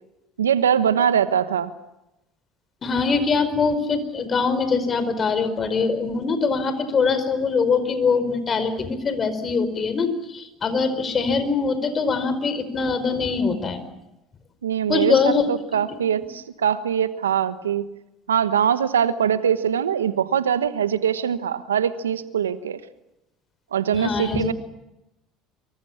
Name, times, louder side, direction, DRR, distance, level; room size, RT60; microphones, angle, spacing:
voice 1, 0.4-1.7 14.6-17.9 18.3-22.8 23.7-24.5, right 8 dB, 90° right, 13 dB, 1.2 m, -22 dB
voice 2, 2.8-13.8 14.9-15.4 23.9-24.5, left 4 dB, 35° left, 11 dB, 4.7 m, -23 dB
25.5 x 23.5 x 7.3 m, 0.92 s
hypercardioid pair, 70°, 0 cm